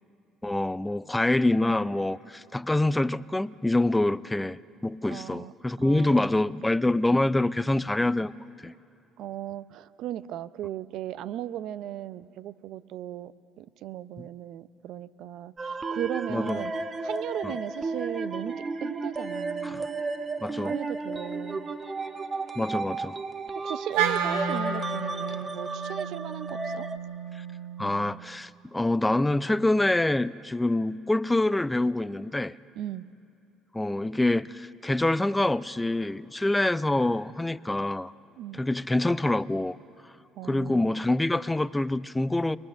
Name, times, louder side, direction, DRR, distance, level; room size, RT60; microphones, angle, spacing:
voice 1, 0.4-8.3 8.6-8.7 14.2-14.3 16.3-16.6 17.4-17.5 19.6-19.9 20.4-20.7 22.6-23.2 27.3-27.4 27.8-32.5 33.7-38.1 38.5-39.8 40.4-42.6, left 2 dB, 10° left, 0.5 m, -26 dB
voice 2, 5.1-5.5 5.8-6.3 9.2-16.7 17.0-18.5 18.8-19.8 20.5-21.7 23.5-26.9 32.7-33.1 38.4-38.6 40.4-40.9, right 12 dB, 70° right, 0.5 m, -37 dB
sound 1, 15.6-27.0, right 3 dB, 30° right, 1.2 m, -33 dB
Wind instrument woodwind instrument, 23.9-28.2, right 5 dB, 90° right, 1.7 m, -32 dB
23.0 x 19.5 x 6.5 m
supercardioid pair, 75°, 0 cm